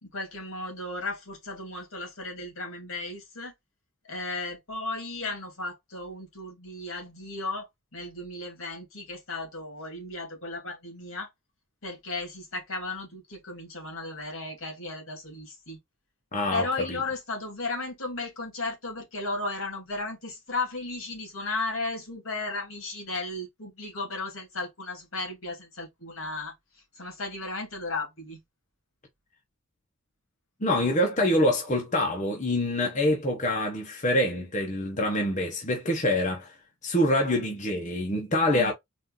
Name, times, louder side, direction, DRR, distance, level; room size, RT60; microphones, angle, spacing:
voice 1, 0.0-3.5 4.0-11.3 11.8-15.8 16.5-26.5 27.0-28.4 38.5-38.7, left 2 dB, 70° left, 2.1 m, -35 dB
voice 2, 16.3-17.0 30.6-36.5 36.8-38.7, left 1 dB, 35° left, 0.9 m, -25 dB
4.2 x 2.5 x 3.7 m
head